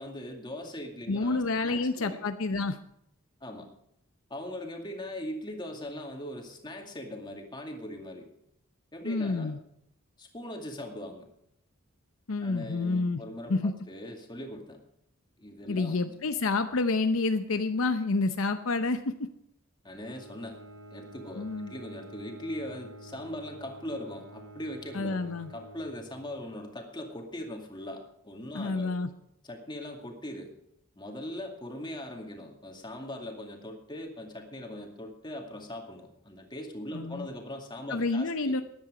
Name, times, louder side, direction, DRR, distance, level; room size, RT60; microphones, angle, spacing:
voice 1, 0.0-2.2 3.4-3.7 4.3-8.2 8.9-9.5 10.2-11.3 12.4-14.8 15.4-16.1 19.8-20.6 20.9-29.0 29.4-30.5 31.0-38.6, left 1 dB, 20° left, 2 dB, 2.2 m, -40 dB
voice 2, 1.1-2.8 9.0-9.6 12.3-13.2 13.5-13.7 15.7-19.1 21.4-21.7 24.9-25.5 28.5-29.1 36.9-37.3 37.9-38.6, left 3 dB, 70° left, 8 dB, 0.7 m, -28 dB
Bowed string instrument, 19.8-26.5, right 1 dB, 80° right, 3.7 m, -49 dB
14.0 x 10.5 x 5.0 m, 0.75 s
head